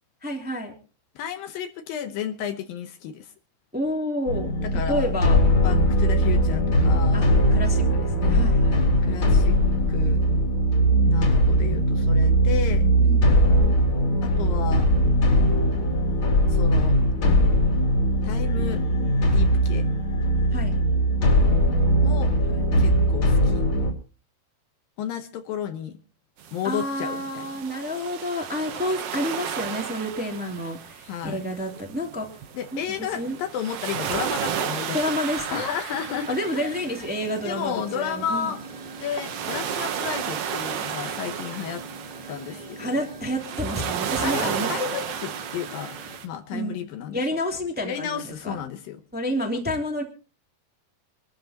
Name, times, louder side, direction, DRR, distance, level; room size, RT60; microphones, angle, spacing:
voice 1, 0.2-0.7 3.7-4.5 4.9-5.9 7.1-8.9 13.0-13.5 20.5-20.8 22.5-22.6 26.6-33.4 34.9-35.7 36.3-38.5 41.0-41.1 42.8-44.7 46.5-46.9 47.1-48.6 49.1-50.0, equal, 5° right, 1 dB, 1.9 m, -30 dB
voice 2, 1.2-3.3 4.6-5.1 5.6-7.3 9.0-9.6 9.9-10.2 11.0-12.9 14.2-14.9 16.5-17.0 18.2-18.8 19.3-19.9 22.0-22.3 22.8-23.6 25.0-26.0 26.5-27.5 31.0-31.4 32.5-36.7 37.4-38.6 39.0-41.8 42.3-43.0 44.2-46.0 46.2-47.2 47.8-49.0, left 8 dB, 75° left, 8 dB, 2.5 m, -32 dB
sound 1, 4.3-23.9, equal, 35° left, 3.2 m, -20 dB
sound 2, 26.4-46.3, right 9 dB, 80° right, 1.3 m, -33 dB
sound 3, 31.6-32.0 33.7-33.8 35.9-46.2, right 3 dB, 30° right, 3.5 m, -42 dB
25.5 x 13.0 x 2.9 m, 0.34 s
omnidirectional pair, 4.4 m